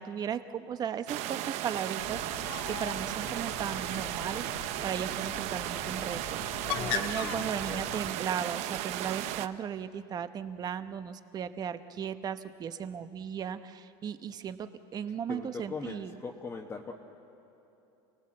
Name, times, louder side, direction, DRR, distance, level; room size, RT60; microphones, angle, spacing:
voice 1, 0.0-4.5 4.8-6.4 6.8-16.2, right 8 dB, 30° right, 11 dB, 0.9 m, -36 dB
sound 1, 1.1-9.5, right 13 dB, 55° right, 0.8 m, -35 dB
Bird, 2.0-8.1, left 8 dB, 75° left, 1.6 m, -40 dB
voice 2, 6.6-7.9 15.3-16.9, left 4 dB, 15° left, -1 dB, 1.3 m, -41 dB
29.0 x 19.0 x 7.7 m, 3.0 s
supercardioid pair, 140°, 13 cm